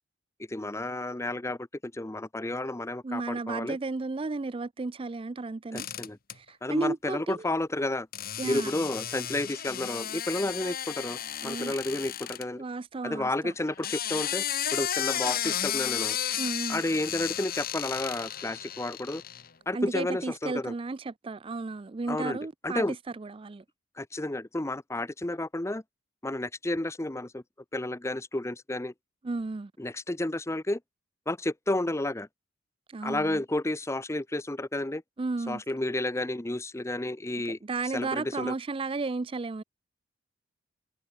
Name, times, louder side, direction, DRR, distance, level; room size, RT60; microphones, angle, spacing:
voice 1, 0.5-3.8 5.7-6.2 6.6-8.1 8.4-11.2 11.4-12.6 13.0-14.4 14.7-16.2 16.7-19.2 19.7-20.7 22.1-22.4 22.6-22.9 24.0-25.8 26.2-27.4 27.7-28.9 29.8-30.8 31.3-32.3 33.0-35.0 35.5-37.6 37.9-38.5, left 1 dB, 15° left, 0.7 m, -31 dB
voice 2, 3.0-5.9 6.3-7.4 8.4-8.7 11.4-11.7 12.6-13.5 16.4-16.8 19.7-22.8 23.2-23.6 29.2-29.7 32.9-33.4 35.2-35.6 37.4-39.6, right 3 dB, 25° right, 0.4 m, -33 dB
sound 1, 5.8-6.3 8.1-12.4 13.6-19.5, left 11 dB, 45° left, 1.3 m, -33 dB
head